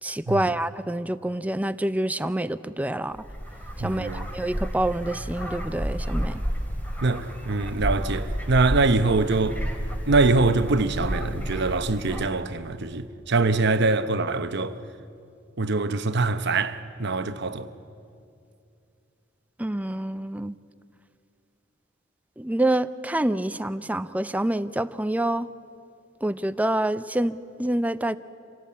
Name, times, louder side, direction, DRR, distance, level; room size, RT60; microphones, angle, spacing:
voice 1, 0.0-3.2 3.8-6.4 19.6-20.6 22.4-25.5 26.2-28.2, right 1 dB, 10° right, 0.5 m, -27 dB
sound 1, 3.1-12.2, equal, 10° left, 2.5 m, -31 dB
voice 2, 3.8-4.3 7.0-9.6 10.1-14.8 15.6-17.7, right 3 dB, 60° right, 0.9 m, -23 dB
27.0 x 17.5 x 8.5 m
head